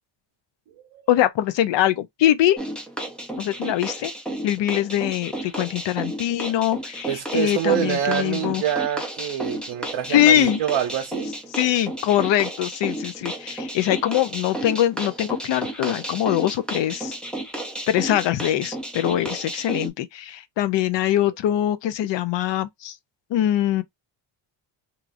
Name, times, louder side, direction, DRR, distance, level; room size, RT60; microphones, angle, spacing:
voice 1, 1.1-2.6 3.4-4.1 4.4-8.6 10.1-10.6 11.5-17.1 17.9-22.9 23.3-23.8, left 12 dB, 65° left, 0.5 m, -22 dB
sound 1, 2.6-19.9, right 1 dB, ahead, 0.4 m, -33 dB
voice 2, 7.0-11.3, right 10 dB, 75° right, 0.7 m, -26 dB
3.0 x 2.4 x 2.4 m
wide cardioid pair, 170°, 47 cm